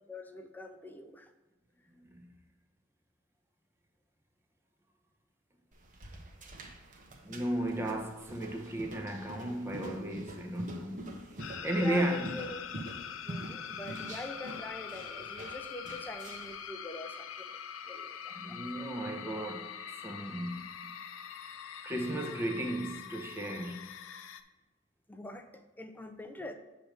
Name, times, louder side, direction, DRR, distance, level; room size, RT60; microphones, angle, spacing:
voice 1, 0.1-1.3 11.8-12.7 13.3-17.6 17.9-19.1 25.1-26.5, left 1 dB, 10° left, 0.5 m, -44 dB
voice 2, 1.9-2.3 7.2-11.2 11.6-12.4 18.4-19.8 20.0-21.0 21.8-23.9, right 1 dB, 10° right, 0.8 m, -35 dB
sound 1, 5.7-16.6, right 1 dB, 40° right, 0.9 m, -46 dB
sound 2, 11.4-24.4, left 8 dB, 85° left, 0.5 m, -44 dB
7.7 x 3.3 x 6.2 m
head